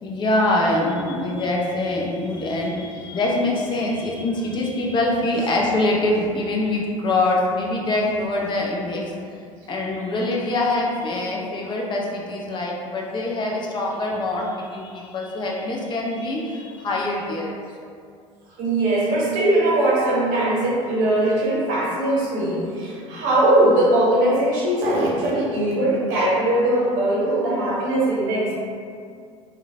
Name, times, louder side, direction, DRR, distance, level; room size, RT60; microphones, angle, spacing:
voice 1, 0.0-9.1 9.7-17.6, left 2 dB, 30° left, -2 dB, 0.5 m, -24 dB
voice 2, 18.6-28.5, right 1 dB, 50° right, -6 dB, 0.8 m, -20 dB
3.1 x 2.2 x 2.4 m, 2.2 s
figure-of-eight pair, 65°, 17 cm